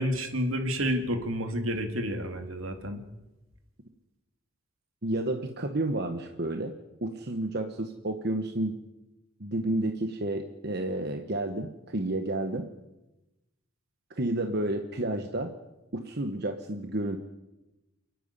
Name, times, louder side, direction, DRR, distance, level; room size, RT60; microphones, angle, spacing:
voice 1, 0.0-3.0, equal, 75° right, 6 dB, 2.5 m, -30 dB
voice 2, 5.0-6.7 7.0-8.8 9.4-12.7 14.1-15.5 15.9-17.2, right 1 dB, 50° right, 6 dB, 1.2 m, -31 dB
28.0 x 9.4 x 10.0 m, 1.0 s
head